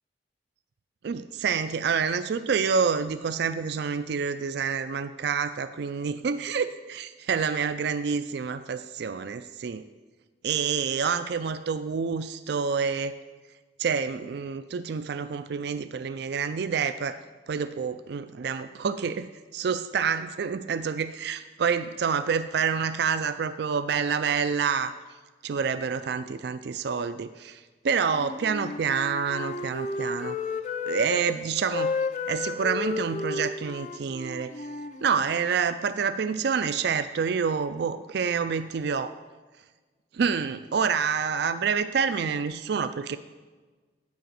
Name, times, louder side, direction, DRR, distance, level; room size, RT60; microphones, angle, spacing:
voice 1, 1.0-9.8 10.4-13.2 13.8-17.2 17.5-24.9 25.4-30.4 30.9-31.9 32.3-34.7 35.0-39.2 40.1-43.2, right 6 dB, 60° right, 11 dB, 0.4 m, -28 dB
Wind instrument woodwind instrument, 28.1-31.4 31.7-35.4, left 4 dB, 40° left, 0.5 m, -33 dB
9.5 x 5.0 x 7.5 m, 1.3 s
head